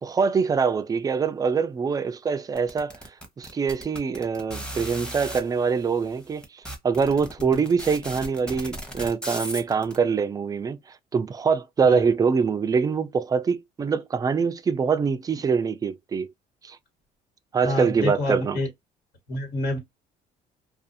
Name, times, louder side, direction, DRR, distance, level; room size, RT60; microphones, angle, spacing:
voice 1, 0.0-3.0 3.4-10.8 11.1-16.3 16.6-16.8 17.5-18.6, right 5 dB, 20° right, 0.3 m, -24 dB
sound 1, 2.6-5.4 6.1-6.2 6.4-10.0, right 1 dB, 5° left, 0.8 m, -36 dB
voice 2, 17.6-18.7 19.3-19.8, left 1 dB, 75° left, 1.5 m, -28 dB
2.5 x 2.3 x 2.5 m
cardioid pair, 110°, 17 cm